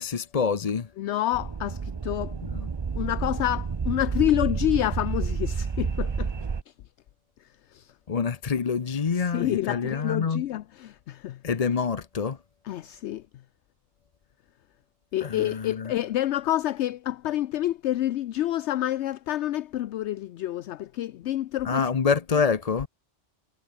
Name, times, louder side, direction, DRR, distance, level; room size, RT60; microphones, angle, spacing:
voice 1, 0.0-0.9 2.5-2.7 8.1-10.5 11.4-12.4 15.2-15.9 21.6-22.9, left 5 dB, 35° left, 0.8 m, -26 dB
voice 2, 1.0-2.3 3.0-6.3 6.7-6.8 7.7-7.9 9.1-11.4 12.7-13.2 15.1-21.8, left 13 dB, 70° left, 0.8 m, -28 dB
sound 1, 1.3-6.6, right 5 dB, 35° right, 0.5 m, -30 dB
omnidirectional pair, 1.2 m